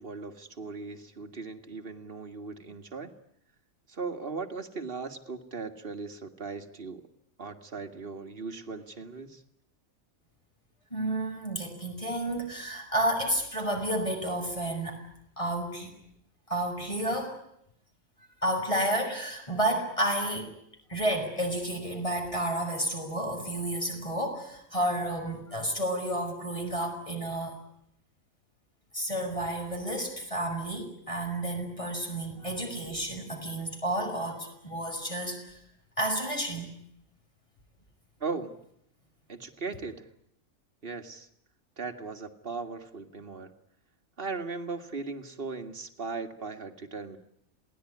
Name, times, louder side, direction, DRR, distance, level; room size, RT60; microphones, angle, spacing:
voice 1, 0.0-3.1 3.9-7.1 7.4-9.4 38.2-38.5 39.3-40.1 40.8-41.3 41.8-43.5 44.2-47.2, right 4 dB, 40° right, 6 dB, 2.1 m, -38 dB
voice 2, 10.9-15.0 15.4-15.9 16.5-17.4 18.4-20.5 20.9-27.6 28.9-35.6 36.0-36.8, right 1 dB, 20° left, 4 dB, 6.3 m, -31 dB
27.5 x 19.0 x 9.9 m, 0.76 s
omnidirectional pair, 1.4 m